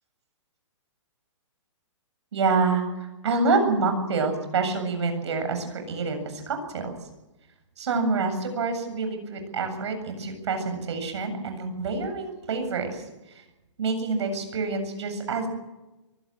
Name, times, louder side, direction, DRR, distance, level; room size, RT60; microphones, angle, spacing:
voice 1, 2.3-6.9 7.8-13.0 13.3-13.4 13.8-15.5, right 4 dB, 65° right, 6 dB, 7.6 m, -27 dB
23.0 x 17.5 x 7.5 m, 1.0 s
hypercardioid pair, 160°, 16 cm